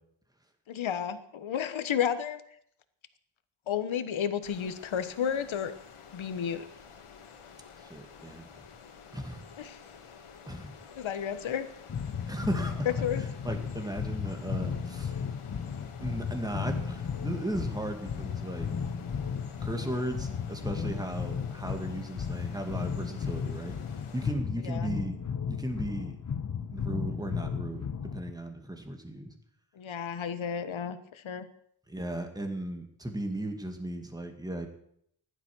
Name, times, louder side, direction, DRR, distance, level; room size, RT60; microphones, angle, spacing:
voice 1, 0.7-2.4 3.7-5.7 6.1-6.6 9.6-9.8 11.0-11.7 12.8-13.2 24.6-24.9 29.8-31.5, left 8 dB, 70° left, 11 dB, 1.3 m, -32 dB
sound 1, 4.4-24.3, left 6 dB, 85° left, 2.2 m, -51 dB
voice 2, 7.9-8.5 9.1-9.4 10.5-10.7 12.2-12.9 13.1-15.1 16.0-18.7 19.6-23.7 24.1-25.2 25.5-26.2 26.7-27.9 28.1-29.3 31.9-34.7, right 1 dB, 10° right, 4 dB, 2.3 m, -36 dB
sound 2, 11.9-28.3, left 6 dB, 35° left, 1.2 m, -35 dB
15.0 x 12.0 x 6.2 m, 0.68 s
wide cardioid pair, 120°, 49 cm